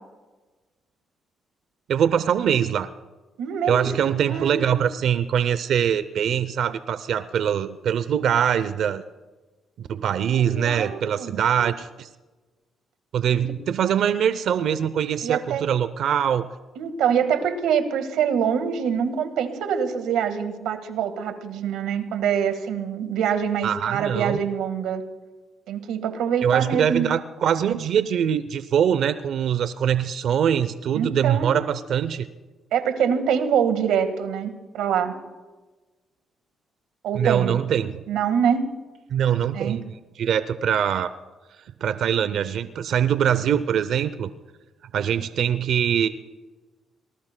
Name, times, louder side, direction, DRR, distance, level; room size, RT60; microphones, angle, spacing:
voice 1, 1.9-2.9 3.7-9.0 9.8-12.1 13.1-16.5 23.6-24.4 26.4-32.3 37.1-38.0 39.1-39.8 40.2-41.1 41.8-44.3 44.9-46.1, right 9 dB, 70° right, 13 dB, 0.5 m, -23 dB
voice 2, 3.4-3.9 4.3-4.7 10.3-11.4 13.3-13.5 15.2-15.6 16.8-25.0 25.7-27.1 30.9-31.5 32.7-35.1 37.0-37.6 38.1-38.6 39.5-39.8, right 8 dB, 90° right, 8 dB, 1.6 m, -25 dB
27.0 x 20.0 x 2.2 m, 1.2 s
cardioid pair, 90°, 0 cm